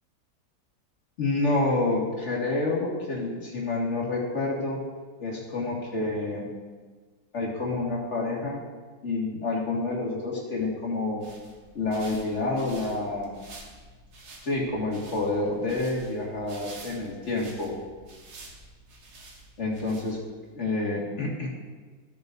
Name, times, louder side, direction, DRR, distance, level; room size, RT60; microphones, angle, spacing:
voice 1, 1.2-4.8 5.2-6.5 7.3-8.6 9.0-11.2 11.7-13.4 14.4-17.8 19.6-20.2 20.5-21.5, left 2 dB, 45° left, -3 dB, 2.3 m, -28 dB
sound 1, 11.0-20.5, right 2 dB, 90° right, 1.8 m, -49 dB
15.5 x 7.0 x 2.7 m, 1.4 s
omnidirectional pair, 1.6 m